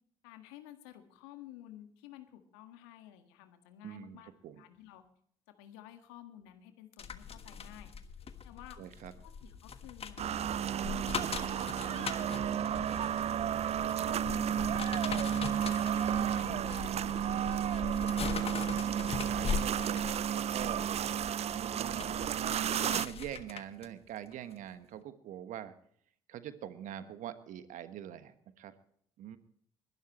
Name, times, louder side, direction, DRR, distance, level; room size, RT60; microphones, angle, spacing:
voice 1, 0.2-4.3 4.6-5.0 5.6-7.9 8.4-8.8 9.2-13.5 14.0-17.4, left 13 dB, 80° left, 7 dB, 1.7 m, -53 dB
voice 2, 3.8-4.5 8.8-9.1 17.8-21.0 21.5-25.7 26.3-28.7 29.2-29.4, right 11 dB, 65° right, 11 dB, 1.3 m, -44 dB
sound 1, 7.0-23.9 24.3-24.5, left 6 dB, 45° left, 1.4 m, -41 dB
sound 2, 10.2-23.1, right 9 dB, 45° right, 0.5 m, -32 dB
21.0 x 12.5 x 3.1 m, 0.62 s
hypercardioid pair, 50°, 14 cm